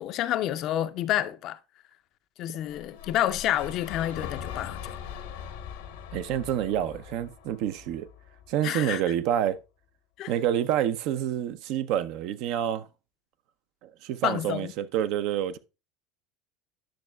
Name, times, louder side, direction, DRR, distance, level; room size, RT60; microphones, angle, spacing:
voice 1, 0.0-1.6 2.4-5.0 8.6-9.0 10.2-10.3 14.2-14.7, left 12 dB, 55° left, 0.5 m, -29 dB
sound 1, 2.6-8.8, left 8 dB, 75° left, 0.9 m, -41 dB
voice 2, 6.1-8.1 8.5-9.6 10.3-12.9 13.8-15.6, right 10 dB, 60° right, 0.5 m, -28 dB
10.5 x 6.3 x 2.2 m
hypercardioid pair, 75°, 0 cm